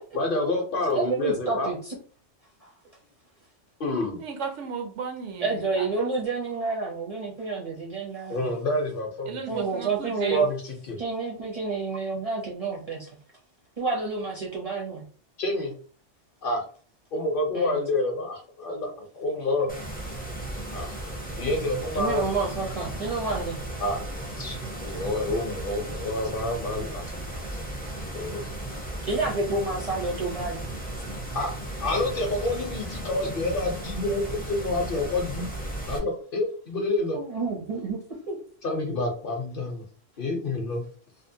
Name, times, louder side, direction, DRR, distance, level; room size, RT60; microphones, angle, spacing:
voice 1, 0.1-1.7 3.8-4.2 8.3-9.4 10.3-11.0 15.4-15.7 16.4-16.6 17.1-19.7 20.7-21.0 21.4-22.2 23.8-24.0 24.4-27.0 28.1-28.4 31.3-31.5 31.8-35.5 35.9-37.2 38.6-39.8 40.2-40.8, left 2 dB, 55° left, 1 dB, 0.7 m, -28 dB
voice 2, 0.9-2.0 2.6-2.7 5.4-8.5 9.5-10.5 11.0-13.1 13.8-15.0 17.5-17.8 21.9-23.6 29.0-30.7 37.1-38.4 40.3-40.4, right 4 dB, 45° right, -3 dB, 0.5 m, -29 dB
voice 3, 4.2-6.1 9.3-10.4, right 5 dB, 80° right, 6 dB, 0.9 m, -35 dB
sound 1, 19.7-36.0, right 1 dB, 15° left, 0.3 m, -35 dB
2.7 x 2.1 x 2.6 m, 0.43 s
omnidirectional pair, 1.2 m